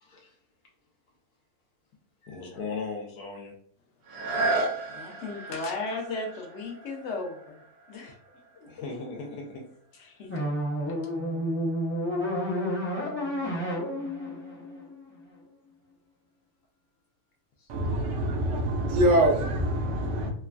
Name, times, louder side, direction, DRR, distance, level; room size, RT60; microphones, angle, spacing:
voice 1, 0.0-0.3 2.2-3.5 8.6-9.6 17.6-17.7 20.2-20.3, left 4 dB, 80° left, 1.1 m, -38 dB
sound 1, 4.0-9.7 10.3-10.4, right 2 dB, 80° right, 1.1 m, -34 dB
voice 2, 4.9-8.1 8.8-8.9 10.0-10.5 10.9-11.0, left 3 dB, 65° left, 0.7 m, -36 dB
sound 2, 10.3-15.4, equal, 20° left, 0.3 m, -30 dB
voice 3, 17.7-20.3, right 1 dB, 65° right, 0.8 m, -24 dB
3.0 x 2.2 x 2.4 m
omnidirectional pair, 1.6 m